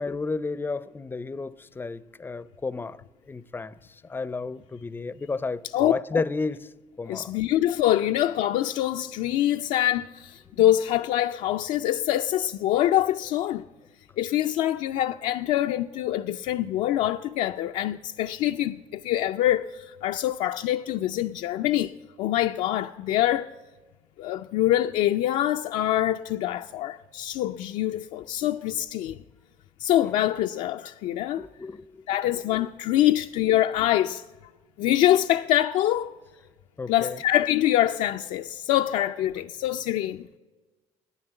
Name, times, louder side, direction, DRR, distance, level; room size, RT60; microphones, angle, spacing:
voice 1, 0.0-3.0 3.3-3.8 4.1-6.7 7.0-7.4 31.4-32.0 36.8-37.2, left 3 dB, 15° left, 0.4 m, -32 dB
voice 2, 5.7-6.2 7.1-13.6 14.2-21.9 22.2-23.5 24.2-29.2 29.8-31.5 32.1-34.2 34.8-36.1 36.9-40.2, left 13 dB, 80° left, 0.4 m, -25 dB
11.0 x 9.6 x 8.0 m
cardioid pair, 100°, 12 cm